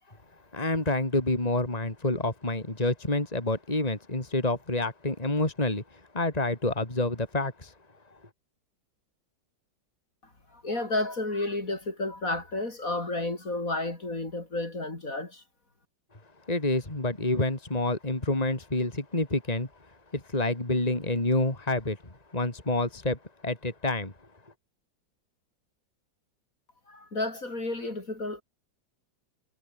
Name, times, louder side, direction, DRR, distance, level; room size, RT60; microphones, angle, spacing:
voice 1, 0.5-7.7 16.5-19.7 20.1-24.1, left 2 dB, 20° left, 3.7 m, -28 dB
voice 2, 10.5-15.4 26.9-28.4, left 2 dB, 45° left, 5.0 m, -31 dB
omnidirectional pair, 2.0 m